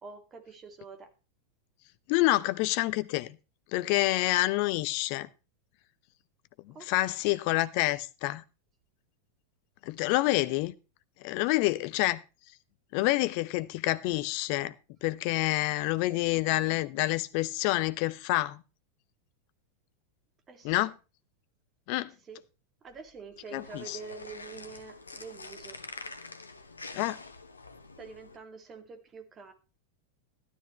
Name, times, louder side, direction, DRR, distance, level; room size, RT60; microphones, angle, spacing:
voice 1, 0.0-1.1 6.7-7.2 20.5-20.9 22.0-22.4 22.8-25.8 28.0-29.5, right 5 dB, 25° right, 2.3 m, -46 dB
voice 2, 2.1-3.4 3.7-5.3 6.7-8.4 9.8-10.7 11.2-12.2 12.9-14.7 15.0-18.6 20.6-20.9 21.9-22.1 23.5-24.0 26.9-27.2, left 18 dB, 45° left, 0.7 m, -28 dB
sound 1, 23.4-28.4, left 3 dB, 75° left, 1.1 m, -46 dB
13.0 x 12.5 x 3.2 m
figure-of-eight pair, 90°, 0 cm